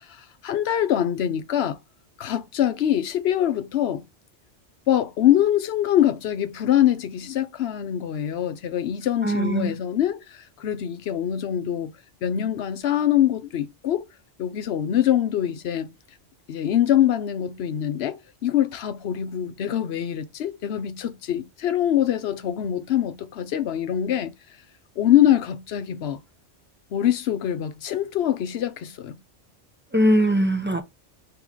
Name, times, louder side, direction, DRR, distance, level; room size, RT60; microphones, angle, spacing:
voice 1, 0.1-1.8 2.2-4.0 4.9-11.9 12.2-14.1 14.4-15.9 16.5-24.3 25.0-26.2 26.9-29.2, left 11 dB, 70° left, 0.9 m, -24 dB
voice 2, 9.2-9.7 29.9-30.8, equal, 15° right, 0.4 m, -20 dB
4.7 x 3.0 x 3.7 m
omnidirectional pair, 1.2 m